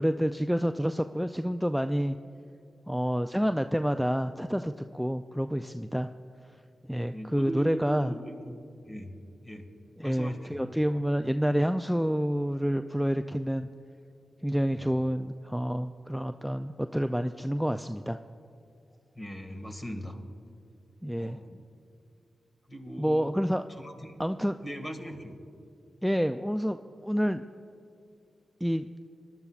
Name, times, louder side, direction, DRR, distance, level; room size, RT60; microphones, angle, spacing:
voice 1, 0.0-2.2 2.9-6.1 6.9-8.1 10.0-13.7 14.4-18.2 21.0-21.4 23.0-23.6 24.2-24.6 26.0-27.4 28.6-28.9, equal, ahead, 8 dB, 0.4 m, -28 dB
voice 2, 7.1-8.6 8.8-9.1 9.4-9.7 10.0-10.6 14.7-14.8 19.2-20.2 20.5-20.6 21.2-21.6 22.7-23.3 23.8-24.2 24.6-25.4, equal, 30° left, 4 dB, 2.0 m, -40 dB
20.5 x 12.0 x 2.4 m, 2.6 s
cardioid pair, 45°, 0 cm